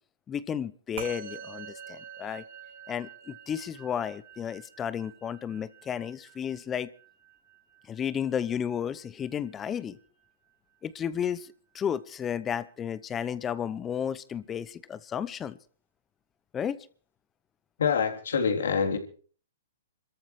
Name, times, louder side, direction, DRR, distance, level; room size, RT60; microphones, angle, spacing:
voice 1, 0.3-2.4 2.9-6.9 7.9-10.0 10.8-15.6 16.5-16.8, left 8 dB, 20° left, 16 dB, 0.7 m, -33 dB
Musical instrument, 1.0-10.5, right 7 dB, 65° right, 5.9 m, -47 dB
voice 2, 17.8-19.0, left 6 dB, 75° left, 4 dB, 3.5 m, -25 dB
27.0 x 14.0 x 3.3 m, 0.42 s
hypercardioid pair, 130°, 0 cm